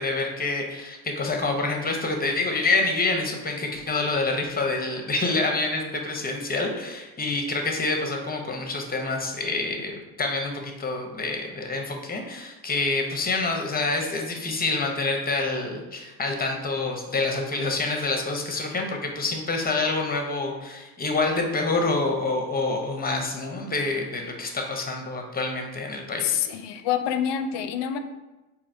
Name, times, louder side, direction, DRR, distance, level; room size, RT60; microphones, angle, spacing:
voice 1, 0.0-26.4, left 3 dB, 20° left, 2 dB, 0.7 m, -27 dB
voice 2, 26.2-28.0, left 9 dB, 60° left, 8 dB, 0.5 m, -26 dB
4.0 x 2.8 x 2.6 m, 1.1 s
supercardioid pair, 75°, 49 cm